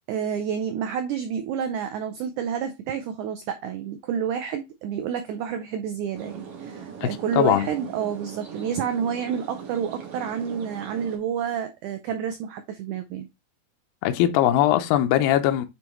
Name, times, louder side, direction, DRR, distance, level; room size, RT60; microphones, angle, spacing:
voice 1, 0.1-13.3, right 8 dB, 85° right, 1.7 m, -29 dB
sound 1, 6.1-11.2, right 6 dB, 55° right, 1.8 m, -40 dB
voice 2, 7.0-7.7 14.0-15.7, left 12 dB, 80° left, 2.4 m, -21 dB
9.0 x 3.5 x 3.0 m
omnidirectional pair, 4.2 m